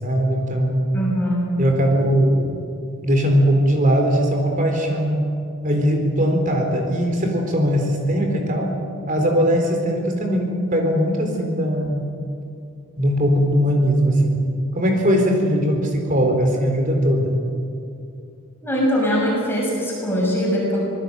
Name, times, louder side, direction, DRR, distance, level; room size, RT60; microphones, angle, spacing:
voice 1, 0.0-0.8 1.6-2.6 3.0-5.3 5.6-8.7 9.1-12.1 13.0-14.4 14.7-17.4, equal, 40° right, 3 dB, 4.0 m, -20 dB
voice 2, 0.9-1.5 18.6-20.8, equal, 10° left, -4 dB, 6.5 m, -21 dB
26.0 x 19.5 x 7.9 m, 2.5 s
head